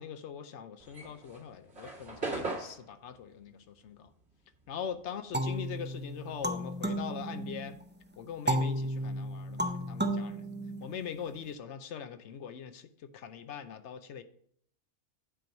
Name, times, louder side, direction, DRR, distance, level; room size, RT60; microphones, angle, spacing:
voice 1, 0.0-4.1 4.7-7.8 8.2-10.4 10.8-14.2, left 8 dB, 70° left, 0.9 m, -42 dB
sound 1, 0.8-5.5 5.8-7.8, right 3 dB, 70° right, 2.3 m, -41 dB
sound 2, 5.3-7.8 8.5-11.3, right 1 dB, 15° right, 0.4 m, -33 dB
8.2 x 4.6 x 5.2 m
omnidirectional pair, 1.3 m